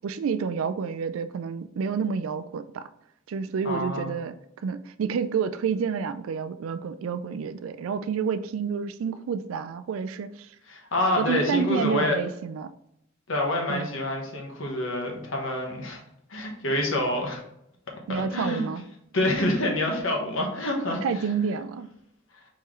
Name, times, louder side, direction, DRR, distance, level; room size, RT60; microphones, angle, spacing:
voice 1, 0.0-2.9 3.3-4.3 4.6-10.5 11.2-12.7 13.7-13.9 18.1-18.8 21.0-21.9, right 6 dB, 90° right, 0.3 m, -29 dB
voice 2, 3.6-4.1 10.7-12.2 13.3-16.0 16.3-17.4 18.1-18.7 19.1-21.3, left 1 dB, 70° left, 1.1 m, -27 dB
4.3 x 3.7 x 3.0 m
head